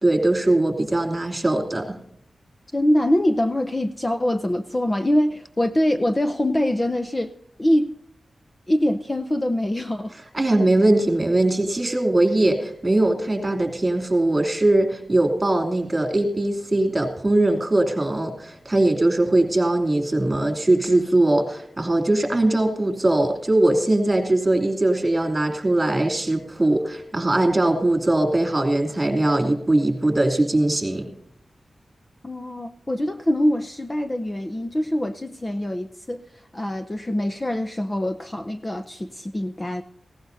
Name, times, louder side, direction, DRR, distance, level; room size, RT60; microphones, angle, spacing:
voice 1, 0.0-2.0 10.3-31.1, right 1 dB, 20° right, 5 dB, 2.8 m, -21 dB
voice 2, 2.7-7.3 7.6-7.9 8.7-10.2 32.2-39.8, left 1 dB, 20° left, 8 dB, 0.6 m, -24 dB
18.5 x 16.5 x 2.7 m, 0.73 s
wide cardioid pair, 120°, 0 cm